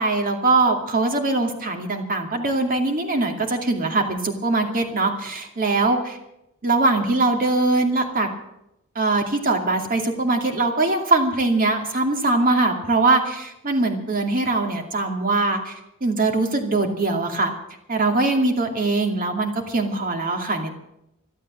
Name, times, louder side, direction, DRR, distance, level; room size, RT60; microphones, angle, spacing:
voice 1, 0.0-6.2 6.6-8.3 8.9-17.5 17.9-20.8, right 2 dB, 40° right, 4 dB, 2.5 m, -22 dB
13.0 x 12.5 x 7.6 m, 0.83 s
head